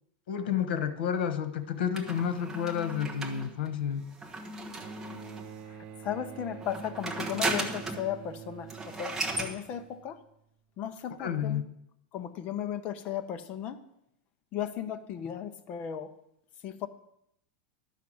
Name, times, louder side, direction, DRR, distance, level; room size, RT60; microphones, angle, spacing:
voice 1, 0.3-4.1 11.2-11.6, left 8 dB, 80° left, 11 dB, 1.2 m, -30 dB
sound 1, 2.0-5.6 6.6-8.1 8.4-8.5 8.7-9.5, right 2 dB, 10° right, 1.0 m, -36 dB
Bowed string instrument, 4.8-10.3 11.4-11.5, right 8 dB, 30° right, 0.5 m, -47 dB
voice 2, 6.0-10.2 10.8-11.6 12.1-13.8 14.5-16.1 16.6-16.9, left 9 dB, 25° left, 9 dB, 0.6 m, -35 dB
12.0 x 5.8 x 7.7 m, 0.78 s
supercardioid pair, 180°, 5 cm